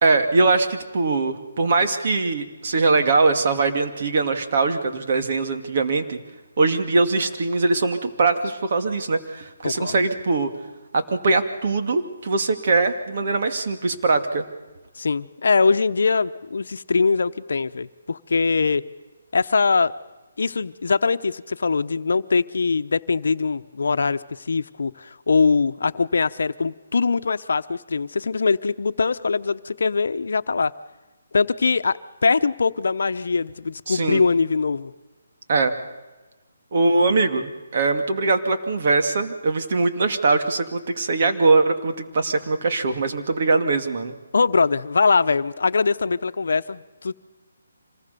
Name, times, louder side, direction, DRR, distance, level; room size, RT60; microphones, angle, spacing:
voice 1, 0.0-6.2 6.6-10.5 10.9-14.4 33.9-34.2 35.5-35.7 36.7-44.1, right 3 dB, 50° right, 6 dB, 2.4 m, -21 dB
voice 2, 9.6-9.9 15.0-18.8 19.3-19.9 20.4-30.7 31.3-34.9 44.3-47.1, left 4 dB, 70° left, 12 dB, 0.9 m, -22 dB
26.0 x 19.5 x 6.9 m, 1.2 s
hypercardioid pair, 160°, 0 cm